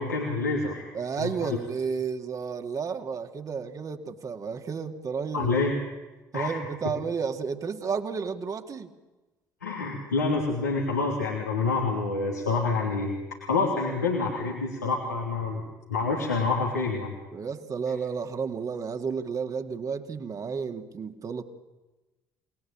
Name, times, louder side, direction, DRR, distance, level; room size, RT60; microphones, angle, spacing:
voice 1, 0.0-0.9 1.2-1.6 5.3-5.7 6.3-6.6 9.6-13.2 13.5-15.6 15.9-17.1 17.9-18.0, left 3 dB, 80° left, 3.0 m, -27 dB
voice 2, 0.9-5.7 6.3-8.9 17.3-21.4, right 5 dB, 40° right, 2.5 m, -32 dB
29.0 x 20.5 x 8.9 m
figure-of-eight pair, 50°, 9 cm